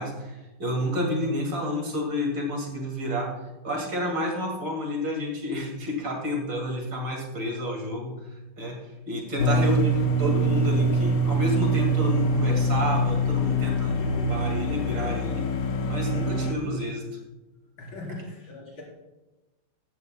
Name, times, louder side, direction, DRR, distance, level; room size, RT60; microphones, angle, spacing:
voice 1, 0.0-3.4 3.6-8.1 8.6-8.8 9.1-15.4 15.9-17.1, left 1 dB, 60° right, 0 dB, 2.8 m, -30 dB
sound 1, 9.4-16.5, right 1 dB, 50° left, 1.0 m, -24 dB
voice 2, 17.8-18.8, left 2 dB, 70° left, -4 dB, 4.9 m, -39 dB
14.5 x 13.5 x 2.2 m, 1.1 s
omnidirectional pair, 2.3 m